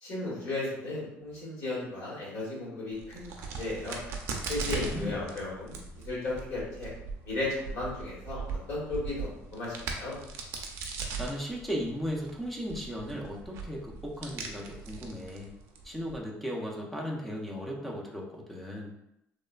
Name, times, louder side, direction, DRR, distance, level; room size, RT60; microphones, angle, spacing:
voice 1, 0.0-4.0 4.4-5.8 6.0-6.9 7.2-10.2, left 2 dB, 55° left, -6 dB, 1.2 m, -35 dB
Crack, 2.9-16.2, right 4 dB, 65° right, 0.4 m, -40 dB
voice 2, 4.7-5.3 11.2-15.5 15.8-18.9, equal, ahead, -2 dB, 0.4 m, -36 dB
3.0 x 2.1 x 2.3 m, 0.82 s
cardioid pair, 165°, 5 cm